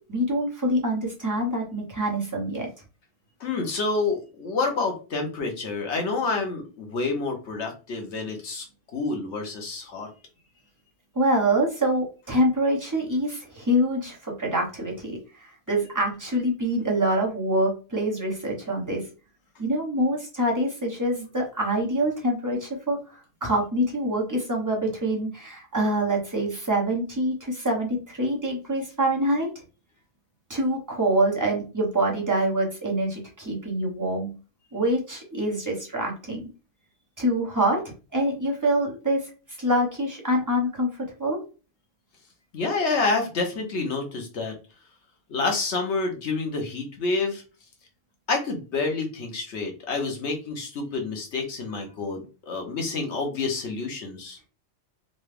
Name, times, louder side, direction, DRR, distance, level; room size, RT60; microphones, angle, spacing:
voice 1, 0.1-2.7 11.1-19.0 19.6-29.5 30.5-34.3 34.7-36.4 37.2-37.8 38.1-39.2 39.6-41.4, right 1 dB, 15° right, -1 dB, 1.1 m, -25 dB
voice 2, 3.4-8.6 8.9-10.1 42.5-44.5 45.3-47.4 48.3-54.4, left 3 dB, 80° left, 3 dB, 1.2 m, -28 dB
3.9 x 2.3 x 3.3 m, 0.33 s
omnidirectional pair, 1.1 m